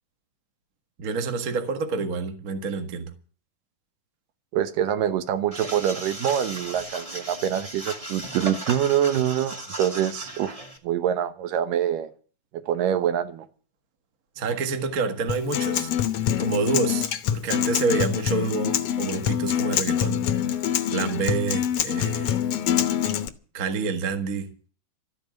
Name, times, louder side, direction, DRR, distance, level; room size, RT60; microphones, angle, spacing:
voice 1, 1.0-3.1 14.3-15.9 16.4-20.6 20.9-22.4 23.5-24.5, right 4 dB, 40° right, 1.3 m, -28 dB
voice 2, 4.5-10.6 10.8-12.1 12.5-13.5, right 10 dB, 75° right, 2.5 m, -25 dB
sound 1, 5.5-10.8, right 1 dB, 15° right, 1.3 m, -36 dB
Acoustic guitar, 15.3-23.3, left 10 dB, 80° left, 1.4 m, -25 dB
13.5 x 9.0 x 9.0 m
omnidirectional pair, 4.1 m